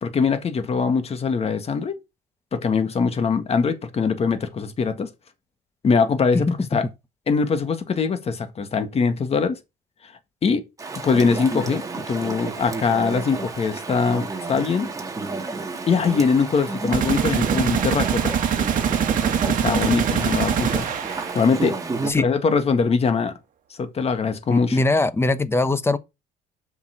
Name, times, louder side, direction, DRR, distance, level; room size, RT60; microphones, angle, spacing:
voice 1, 0.0-2.0 2.5-5.1 5.8-6.9 7.3-9.6 10.4-10.6 11.0-14.9 15.9-18.3 19.5-20.9 21.3-21.8 22.2-23.3 23.8-24.8, left 5 dB, 35° left, 1.8 m, -22 dB
Chatter / Stream, 10.8-22.1, right 3 dB, 20° right, 2.1 m, -31 dB
sound 1, 16.9-21.7, right 8 dB, 50° right, 2.1 m, -23 dB
voice 2, 24.5-26.0, left 2 dB, 15° left, 1.0 m, -21 dB
8.0 x 5.9 x 6.1 m
cardioid pair, 110°, 17 cm